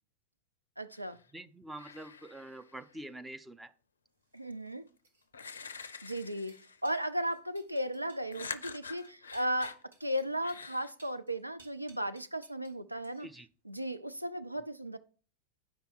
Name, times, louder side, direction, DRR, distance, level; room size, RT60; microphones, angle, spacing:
voice 1, 0.8-1.2 4.3-4.8 6.0-13.3 13.6-15.0, equal, 85° right, 0.5 m, -36 dB
sound 1, 0.9-1.3 1.7-3.1 4.7-4.8 5.3-6.9 8.3-9.8 10.4-10.9, left 5 dB, 70° left, 0.5 m, -46 dB
voice 2, 1.3-3.7 13.2-13.5, right 1 dB, 5° right, 0.6 m, -46 dB
sound 2, 4.2-12.8 13.0-13.5, right 2 dB, 70° right, 1.6 m, -62 dB
8.5 x 5.4 x 4.5 m
figure-of-eight pair, 90°, 0 cm